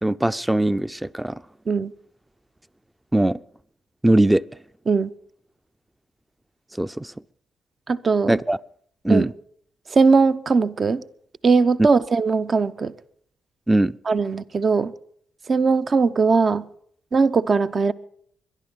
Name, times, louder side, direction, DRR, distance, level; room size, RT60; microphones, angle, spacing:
voice 1, 0.0-1.4 3.1-3.4 4.0-4.4 6.8-7.1 8.3-8.6 9.0-9.3 13.7-14.0, right 1 dB, 10° right, 0.5 m, -20 dB
voice 2, 7.9-8.4 9.1-9.3 9.9-11.0 11.4-12.9 14.1-14.9 15.5-16.7 17.1-17.9, right 4 dB, 45° right, 0.7 m, -19 dB
22.0 x 11.5 x 5.5 m
hypercardioid pair, 50°, 0 cm